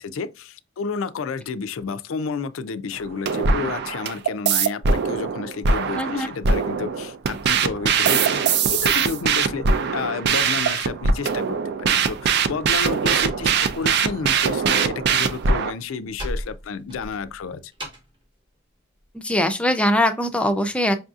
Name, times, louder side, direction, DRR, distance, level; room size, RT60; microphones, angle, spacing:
voice 1, 0.0-9.7 9.9-17.7, left 5 dB, 85° left, 0.4 m, -31 dB
sound 1, 2.9-15.7, right 5 dB, 55° right, 0.4 m, -22 dB
voice 2, 5.9-6.3 19.1-21.0, left 1 dB, 5° left, 0.4 m, -21 dB
Slam, 12.6-14.5 14.7-18.2, equal, 25° right, 0.9 m, -37 dB
5.4 x 2.6 x 2.4 m
head